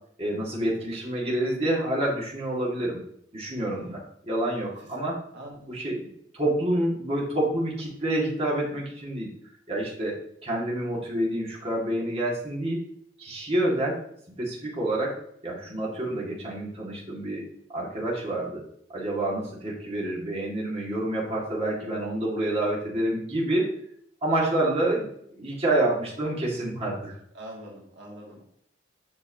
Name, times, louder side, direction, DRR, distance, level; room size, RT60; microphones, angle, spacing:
voice 1, 0.2-3.0 3.3-5.2 5.7-9.3 9.7-12.8 13.2-14.0 14.4-15.2 15.4-17.5 17.7-18.6 18.9-23.8 24.2-27.2, right 1 dB, 35° right, -5 dB, 2.4 m, -28 dB
voice 2, 3.7-4.0 4.8-5.0 5.3-5.7 27.3-28.4, right 1 dB, 70° right, -3 dB, 1.7 m, -44 dB
7.9 x 6.2 x 3.0 m, 0.68 s
head